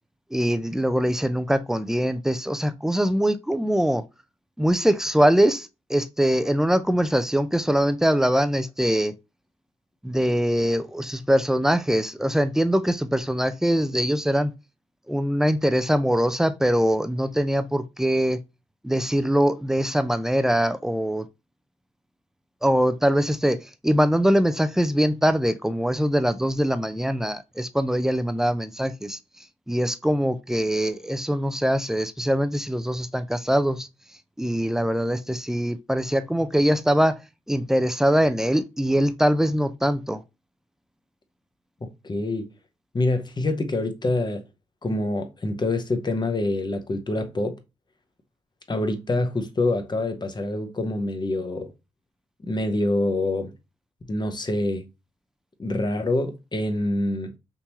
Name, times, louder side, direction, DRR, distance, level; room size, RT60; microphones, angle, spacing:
voice 1, 0.3-4.0 4.6-9.1 10.0-14.5 15.1-18.4 18.8-21.3 22.6-29.2 29.7-33.9 34.4-37.2 37.5-40.2, equal, 5° right, 0.5 m, -22 dB
voice 2, 41.8-42.5 42.9-44.5 44.8-47.6 48.7-51.7 52.4-53.5 54.0-54.9 55.6-57.3, left 2 dB, 35° left, 0.9 m, -26 dB
3.6 x 2.9 x 2.8 m
supercardioid pair, 50°, 14 cm